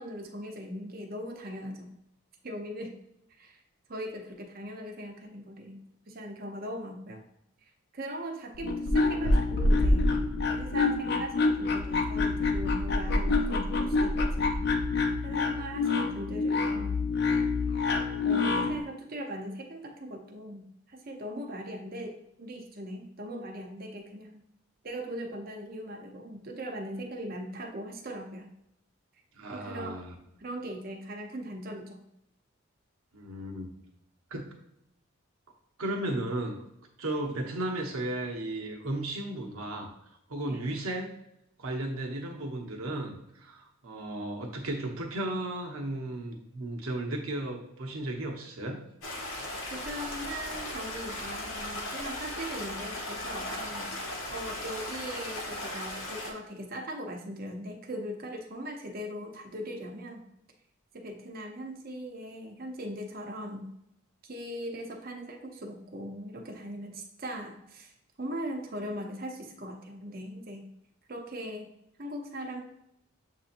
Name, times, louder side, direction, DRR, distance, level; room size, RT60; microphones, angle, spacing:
voice 1, 0.0-1.9 2.4-2.9 3.4-3.6 3.9-5.8 6.1-7.2 7.9-10.1 10.5-14.7 15.2-17.0 18.2-24.4 24.8-28.5 29.5-30.0 30.4-32.0 40.5-40.8 49.7-53.9 54.3-60.2 60.9-63.7 64.2-67.9 68.2-70.7 71.1-71.7 72.0-72.6, equal, 45° right, 3 dB, 0.7 m, -39 dB
sound 1, 8.5-18.8, left 3 dB, 50° left, 0.4 m, -26 dB
voice 2, 29.3-30.2 33.1-33.7 34.3-34.5 35.8-36.6 37.0-39.9 40.3-41.1 41.6-48.8, right 1 dB, 90° right, 2 dB, 0.9 m, -34 dB
Stream, 49.0-56.3, left 1 dB, 85° left, 1.0 m, -37 dB
7.3 x 2.8 x 2.5 m, 0.81 s
head